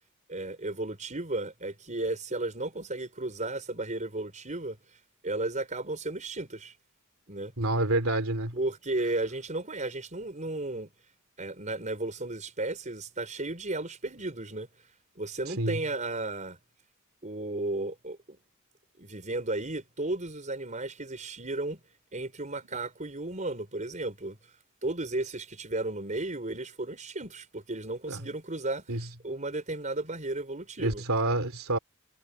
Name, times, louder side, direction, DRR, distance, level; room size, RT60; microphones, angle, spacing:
voice 1, 0.3-4.8 5.2-6.7 7.3-7.5 8.5-10.9 11.4-14.7 15.2-16.6 17.2-18.4 19.0-21.8 22.1-24.4 24.8-31.0, right 2 dB, 35° right, 5.2 m, -34 dB
voice 2, 7.6-8.6 15.6-15.8 28.1-28.2 28.9-29.0 30.8-31.8, right 2 dB, 80° right, 3.2 m, -27 dB
head